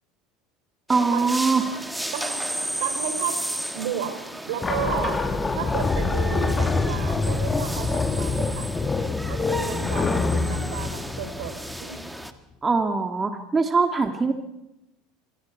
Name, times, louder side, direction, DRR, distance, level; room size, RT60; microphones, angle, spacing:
sound 1, 0.9-12.3, right 1 dB, 5° right, 1.6 m, -34 dB
voice 1, 0.9-1.6 12.6-14.3, right 4 dB, 20° right, 5 dB, 2.3 m, -22 dB
voice 2, 2.1-3.4 3.7-8.7 9.3-11.5 11.8-12.0, right 9 dB, 70° right, 8 dB, 3.6 m, -33 dB
sound 2, 4.6-12.0, left 3 dB, 20° left, 2.0 m, -25 dB
27.0 x 22.0 x 4.6 m, 0.88 s
hypercardioid pair, 80°, 0 cm